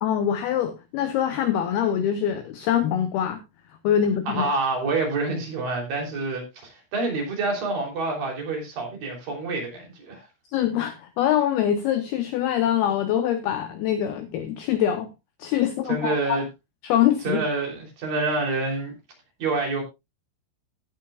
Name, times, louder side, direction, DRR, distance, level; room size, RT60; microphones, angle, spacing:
voice 1, 0.0-3.4 3.8-4.5 10.5-15.1 15.4-16.4 16.8-17.4, left 10 dB, 90° left, 2.2 m, -24 dB
voice 2, 4.3-10.2 15.9-16.5 17.2-18.9 19.4-19.8, right 3 dB, 50° right, 4.7 m, -27 dB
17.5 x 8.7 x 2.4 m
omnidirectional pair, 5.7 m